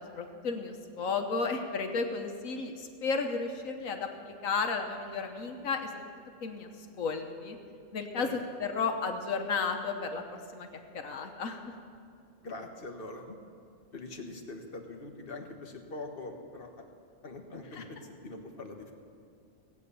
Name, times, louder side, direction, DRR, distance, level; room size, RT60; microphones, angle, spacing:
voice 1, 0.0-6.1 6.4-6.7 7.0-7.6 7.9-8.3 8.6-10.2 10.5-10.7 10.9-11.8 17.7-17.8, left 4 dB, 75° left, 5 dB, 1.4 m, -33 dB
voice 2, 12.4-13.4 13.9-16.9 17.2-18.9, left 2 dB, 45° left, 3 dB, 1.4 m, -43 dB
17.0 x 8.5 x 6.9 m, 2.4 s
omnidirectional pair, 1.4 m